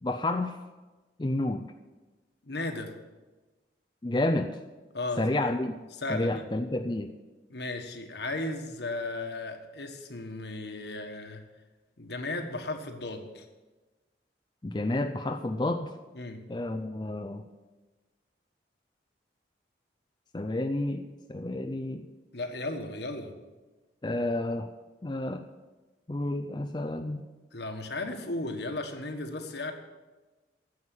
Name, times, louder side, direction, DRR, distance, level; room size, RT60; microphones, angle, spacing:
voice 1, 0.0-0.6 1.2-1.7 4.0-4.5 5.2-5.7 6.1-7.1 14.6-15.9 16.5-17.4 20.3-21.0 21.3-22.0 24.0-24.7 25.0-25.4 26.1-27.2, left 2 dB, 25° left, 6 dB, 0.4 m, -30 dB
voice 2, 2.4-2.9 4.9-5.2 6.0-6.4 7.5-11.4 12.0-13.4 16.1-16.4 22.3-23.3 27.5-29.7, left 2 dB, 70° left, 5 dB, 1.4 m, -35 dB
9.6 x 7.9 x 9.5 m, 1.2 s
head